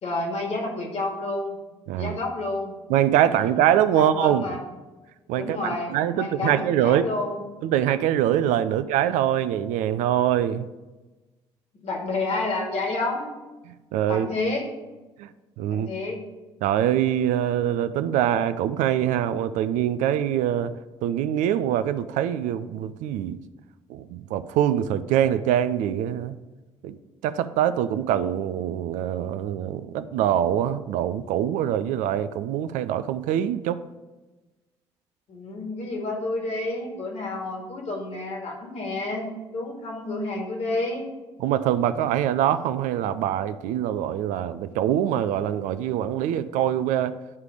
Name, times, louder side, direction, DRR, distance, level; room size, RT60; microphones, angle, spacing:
voice 1, 0.0-1.6 2.0-2.8 3.3-3.6 3.9-4.6 5.4-7.4 8.7-8.8 11.7-13.3 14.1-14.7 15.7-16.2 35.3-41.1, left 2 dB, 50° left, 1 dB, 1.9 m, -30 dB
voice 2, 2.9-4.5 5.3-7.0 7.6-10.7 13.9-14.3 15.2-15.3 15.6-15.9 16.6-20.7 21.0-23.4 23.9-26.4 26.8-26.9 27.2-33.8 41.4-47.1, right 11 dB, 65° right, 13 dB, 0.4 m, -24 dB
9.6 x 3.3 x 4.9 m, 1.2 s
hypercardioid pair, 50°, 14 cm